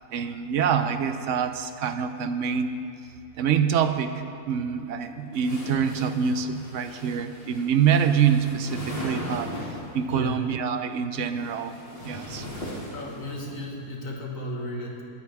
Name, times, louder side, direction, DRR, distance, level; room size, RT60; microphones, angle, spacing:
voice 1, 0.1-2.8 3.4-11.8 12.0-12.5, right 7 dB, 65° right, 9 dB, 0.8 m, -25 dB
sound 1, 5.3-10.0 11.0-13.5, left 1 dB, 40° left, 2.5 m, -38 dB
voice 2, 10.1-10.5 12.9-15.0, left 1 dB, 55° left, -1 dB, 2.0 m, -34 dB
21.5 x 8.8 x 3.5 m, 2.6 s
omnidirectional pair, 1.7 m